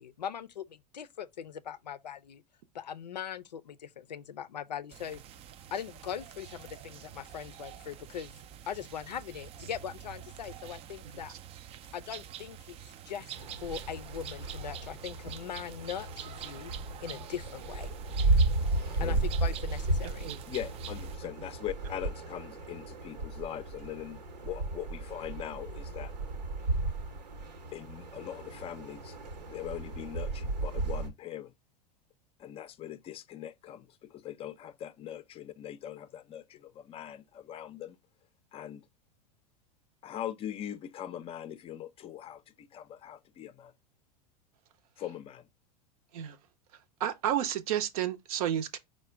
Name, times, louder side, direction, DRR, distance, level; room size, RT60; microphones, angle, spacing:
voice 1, 0.0-2.4 2.7-5.2 5.7-8.3 8.6-11.3 11.9-12.8 13.1-16.7 17.0-17.9 19.0-20.3, left 8 dB, 85° left, 0.4 m, -40 dB
sound 1, 4.9-21.2, right 10 dB, 30° right, 0.4 m, -47 dB
sound 2, 13.3-31.1, right 2 dB, 80° right, 1.1 m, -34 dB
voice 2, 20.5-26.1 27.7-29.2 29.5-31.5 32.4-38.0 38.5-38.8 40.0-43.7 45.0-45.5, left 11 dB, 30° left, 0.5 m, -41 dB
voice 3, 47.0-48.8, right 10 dB, 60° right, 0.7 m, -31 dB
4.8 x 2.2 x 4.4 m
hypercardioid pair, 90°, 21 cm